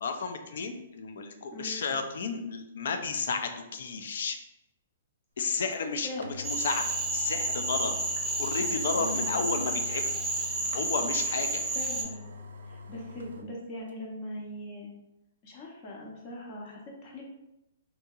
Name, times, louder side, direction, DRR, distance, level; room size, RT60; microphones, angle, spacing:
voice 1, 0.0-4.4 5.4-8.0 8.4-10.1 10.7-11.6, left 5 dB, 65° left, 7 dB, 0.3 m, -32 dB
voice 2, 1.5-1.8 5.4-5.6 6.0-6.3 9.0-9.6 11.7-12.2 12.6-14.9 15.4-17.2, left 1 dB, 30° left, -2 dB, 0.6 m, -40 dB
sound 1, 5.7-5.8 6.2-13.5 13.9-14.0, left 2 dB, 85° right, 0.3 m, -44 dB
Cricket / Frog, 6.4-12.0, right 2 dB, 5° right, 0.4 m, -31 dB
2.7 x 2.7 x 2.3 m, 0.92 s
hypercardioid pair, 165°, 0 cm